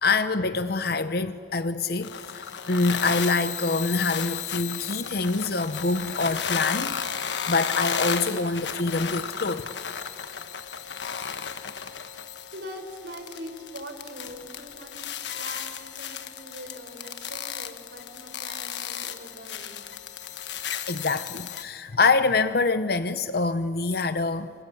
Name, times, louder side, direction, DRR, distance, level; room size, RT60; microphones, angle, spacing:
voice 1, 0.0-9.7 20.9-24.5, left 3 dB, 60° left, 11 dB, 0.8 m, -25 dB
sound 1, 2.0-21.6, left 7 dB, 85° left, 1.4 m, -34 dB
voice 2, 12.5-15.1 15.3-19.8, equal, 75° right, 6 dB, 4.3 m, -42 dB
27.0 x 26.0 x 8.4 m, 2.5 s
head